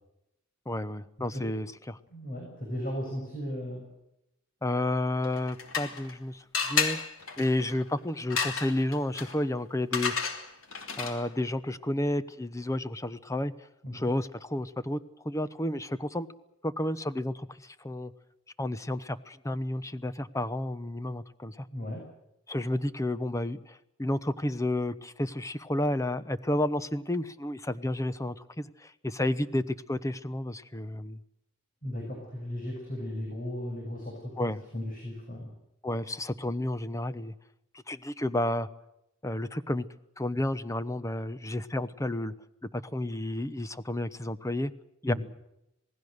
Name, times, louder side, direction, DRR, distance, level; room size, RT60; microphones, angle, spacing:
voice 1, 0.7-2.0 4.6-7.0 7.4-10.1 11.0-13.5 13.9-15.0 15.2-16.3 16.6-18.1 18.6-21.7 22.5-31.2 34.4-34.6 35.8-37.3 37.9-38.7 39.2-39.9 40.2-42.3 42.8-44.7 45.0-45.1, left 1 dB, 15° left, 13 dB, 1.0 m, -31 dB
voice 2, 2.1-3.9 13.8-14.1 21.7-22.0 31.8-35.5 45.1-45.2, equal, 45° left, 0 dB, 6.7 m, -36 dB
sound 1, 5.2-6.2 6.5-11.4, left 5 dB, 80° left, 3.2 m, -33 dB
27.5 x 19.0 x 6.7 m, 0.84 s
head